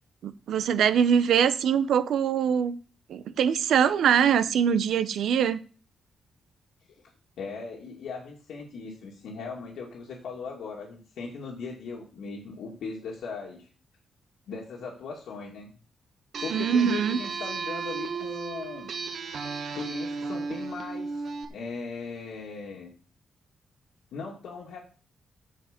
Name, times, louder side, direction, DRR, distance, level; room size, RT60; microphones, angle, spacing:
voice 1, 0.2-2.7 3.1-5.6 16.5-17.2, right 8 dB, 80° right, 12 dB, 0.9 m, -23 dB
voice 2, 7.4-13.7 14.5-15.7 16.4-18.9 19.7-22.9 24.1-24.8, left 4 dB, 80° left, -2 dB, 2.3 m, -38 dB
sound 1, 16.3-21.5, right 5 dB, 55° right, 1.7 m, -34 dB
15.5 x 5.4 x 5.2 m, 0.39 s
wide cardioid pair, 170°, 0 cm